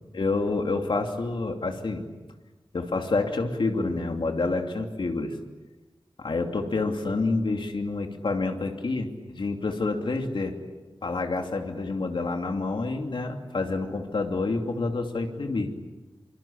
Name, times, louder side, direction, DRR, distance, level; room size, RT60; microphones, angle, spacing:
voice 1, 0.1-2.0 2.7-5.3 6.2-10.5 11.0-15.7, left 3 dB, 75° left, 4 dB, 2.9 m, -28 dB
26.5 x 25.5 x 8.7 m, 1.2 s
wide cardioid pair, 90°, 8 cm